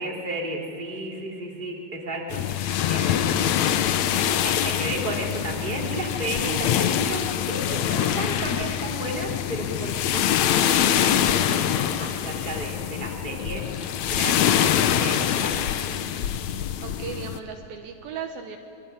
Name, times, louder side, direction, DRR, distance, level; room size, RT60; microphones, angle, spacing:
voice 1, 0.0-3.5 3.7-3.8 4.3-13.6 14.1-15.5, right 2 dB, 15° right, -1 dB, 3.2 m, -33 dB
sound 1, 2.3-17.4, left 10 dB, 80° left, 1.6 m, -24 dB
voice 2, 3.4-3.8 4.2-4.6 7.8-7.9 15.5-16.3 16.6-18.6, right 7 dB, 70° right, 4 dB, 2.8 m, -39 dB
27.0 x 23.0 x 9.6 m, 2.7 s
omnidirectional pair, 4.5 m